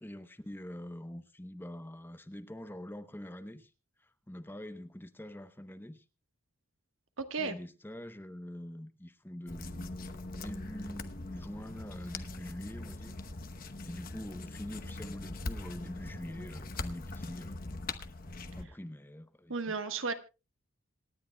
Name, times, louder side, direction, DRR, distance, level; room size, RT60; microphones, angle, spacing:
voice 1, 0.0-3.7 4.0-6.0 7.4-13.2 13.6-17.6 18.6-19.7, left 1 dB, 10° left, 9 dB, 0.8 m, -45 dB
voice 2, 7.2-7.5 19.5-20.1, right 4 dB, 65° right, 8 dB, 1.4 m, -33 dB
sound 1, 9.5-18.6, left 2 dB, 40° left, 0.9 m, -42 dB
27.0 x 10.5 x 2.2 m, 0.30 s
head